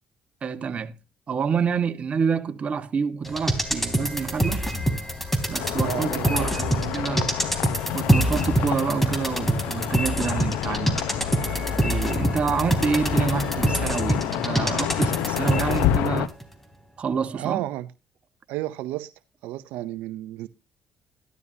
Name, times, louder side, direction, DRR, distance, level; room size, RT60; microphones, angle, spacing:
voice 1, 0.4-0.9 1.3-4.6 5.5-7.2 7.9-11.0 11.8-16.3 17.0-17.6, right 6 dB, 45° right, 1.5 m, -27 dB
sound 1, 3.2-16.1 16.4-16.5, right 1 dB, 5° left, 3.3 m, -26 dB
sound 2, 3.6-13.7, left 3 dB, 60° left, 2.9 m, -38 dB
sound 3, 5.6-16.3, left 12 dB, 85° left, 0.9 m, -29 dB
voice 2, 5.8-7.3 17.3-17.9 18.5-19.1 19.4-20.5, right 15 dB, 85° right, 0.6 m, -32 dB
13.5 x 12.0 x 2.8 m
supercardioid pair, 70°, 3 cm